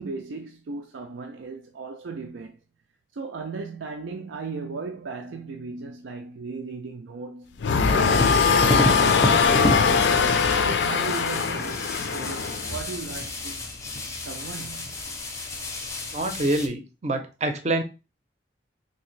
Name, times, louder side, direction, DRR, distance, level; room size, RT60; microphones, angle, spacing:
voice 1, 0.0-2.6 3.1-13.6 14.3-15.0, right 4 dB, 85° right, 0.4 m, -37 dB
sound 1, 7.6-12.8, left 5 dB, 70° left, 0.4 m, -21 dB
Distant fireworks in the South part two, 8.0-16.7, left 1 dB, 15° left, 0.5 m, -31 dB
voice 2, 16.1-17.8, right 2 dB, 35° right, 0.6 m, -26 dB
3.4 x 2.8 x 3.1 m
head